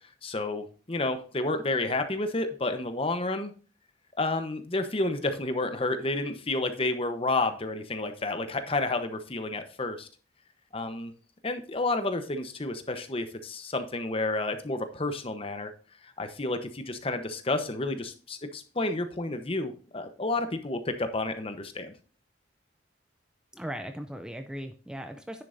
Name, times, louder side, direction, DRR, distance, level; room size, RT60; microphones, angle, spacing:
voice 1, 0.2-3.5 4.2-10.1 10.7-11.1 11.4-15.7 16.2-21.9, left 2 dB, 30° left, 8 dB, 0.9 m, -30 dB
voice 2, 23.5-25.4, equal, 5° right, 7 dB, 0.4 m, -38 dB
10.0 x 7.6 x 2.6 m, 0.39 s
head